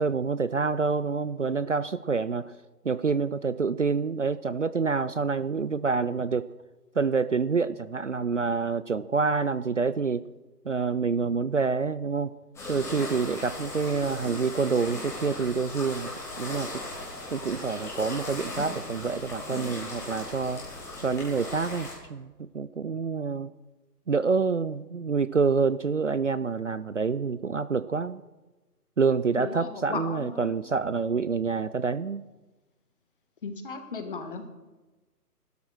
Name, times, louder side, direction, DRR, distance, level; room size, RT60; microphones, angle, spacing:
voice 1, 0.0-2.5 2.8-6.5 7.0-10.3 10.6-12.3 12.7-16.1 16.4-16.7 17.3-20.6 21.0-23.5 24.1-28.2 29.0-32.2, right 5 dB, 50° right, 16 dB, 0.5 m, -27 dB
sound 1, 12.5-21.9, left 2 dB, 5° left, 2.8 m, -38 dB
voice 2, 29.4-30.6 33.4-34.5, left 4 dB, 35° left, 7 dB, 1.7 m, -36 dB
16.5 x 12.5 x 6.3 m, 1.2 s
figure-of-eight pair, 140°, 48 cm